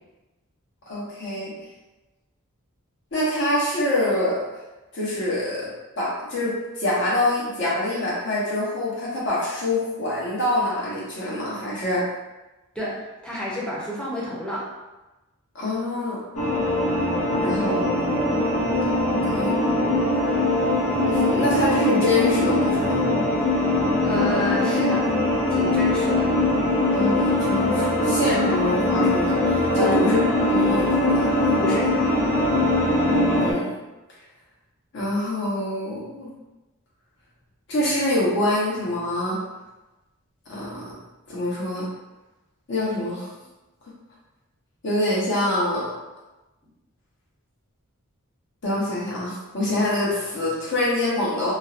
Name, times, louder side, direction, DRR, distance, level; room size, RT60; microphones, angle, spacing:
voice 1, 0.9-1.5 3.1-4.4 4.9-5.7 6.0-12.0 15.5-16.2 17.4-17.9 19.1-19.6 21.1-23.0 26.9-30.2 30.5-31.3 33.4-33.7 34.9-36.3 37.7-39.4 40.5-40.9 41.3-41.9 42.7-43.3 44.8-45.9 48.6-51.5, left 1 dB, 55° left, -6 dB, 0.8 m, -25 dB
voice 2, 13.2-14.7 24.0-25.1 25.5-26.3 29.8-30.0 31.6-31.9, left 1 dB, 5° left, -7 dB, 0.6 m, -29 dB
sound 1, 16.4-33.5, left 1 dB, 85° left, 0.6 m, -21 dB
2.5 x 2.0 x 2.4 m, 1.1 s
head